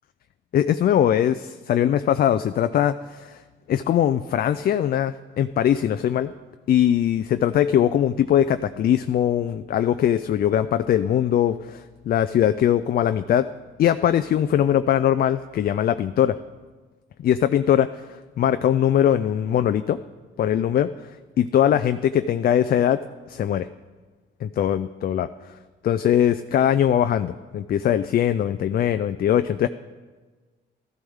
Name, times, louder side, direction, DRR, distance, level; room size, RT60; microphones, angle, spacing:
voice 1, 0.5-3.4 3.7-6.3 6.7-13.5 13.8-16.4 17.2-18.1 18.4-20.0 20.4-23.0 23.3-23.7 24.4-25.3 25.8-29.7, left 10 dB, 50° left, 11 dB, 0.4 m, -21 dB
13.5 x 11.5 x 3.6 m, 1.3 s
cardioid pair, 90°, 20 cm